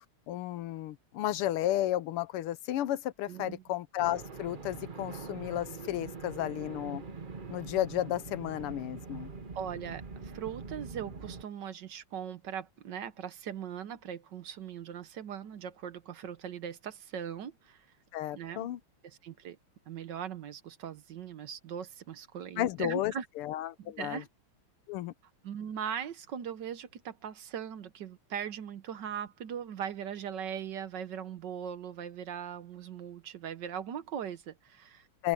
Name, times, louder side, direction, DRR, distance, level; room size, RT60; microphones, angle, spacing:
voice 1, 0.3-7.0 7.5-9.3 18.1-18.8 22.6-24.2 24.9-25.1 35.2-35.3, left 13 dB, 90° left, 1.7 m, -33 dB
voice 2, 3.3-3.6 9.5-17.9 18.3-18.7 19.0-19.6 19.9-23.3 23.8-24.3 25.4-35.1, right 8 dB, 60° right, 1.4 m, -40 dB
sound 1, 4.0-11.4, right 4 dB, 35° right, 0.8 m, -43 dB
open air
omnidirectional pair, 2.4 m